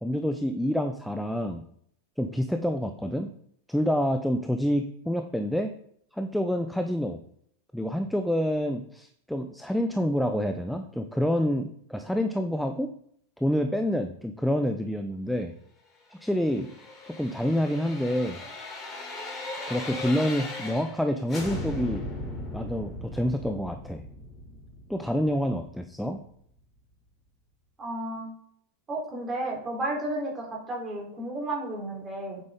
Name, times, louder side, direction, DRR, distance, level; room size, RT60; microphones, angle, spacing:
voice 1, 0.0-1.6 2.2-3.3 3.7-5.7 6.1-7.2 7.7-12.9 13.4-15.5 16.1-16.7 17.1-18.4 19.7-22.0 22.5-24.0 24.9-26.2, equal, ahead, 6 dB, 0.7 m, -27 dB
sound 1, 16.3-21.0 21.3-26.2 26.5-26.6, left 2 dB, 20° left, 3.3 m, -38 dB
voice 2, 27.8-28.3 28.9-32.4, right 1 dB, 20° right, -2 dB, 3.7 m, -32 dB
8.8 x 7.7 x 3.7 m, 0.66 s
figure-of-eight pair, 90°, 0 cm